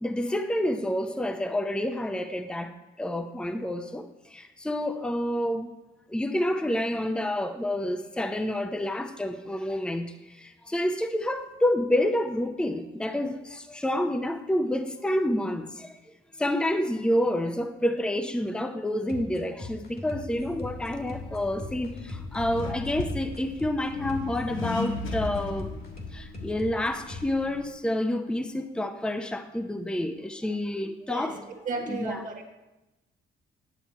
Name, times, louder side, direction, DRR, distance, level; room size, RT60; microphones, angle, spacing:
voice 1, 0.0-2.7 3.0-4.0 4.3-5.7 6.1-10.1 10.7-15.9 16.4-25.7 26.1-31.4 31.9-32.2, left 1 dB, 5° left, 7 dB, 0.6 m, -28 dB
sound 1, 19.1-27.3, left 2 dB, 50° left, 1.8 m, -40 dB
Accelerating revving vroom, 20.4-27.7, left 4 dB, 85° left, 1.1 m, -37 dB
voice 2, 31.1-32.5, right 4 dB, 40° right, 0 dB, 1.5 m, -34 dB
10.5 x 7.1 x 4.5 m, 1.0 s
cardioid pair, 90°, 20 cm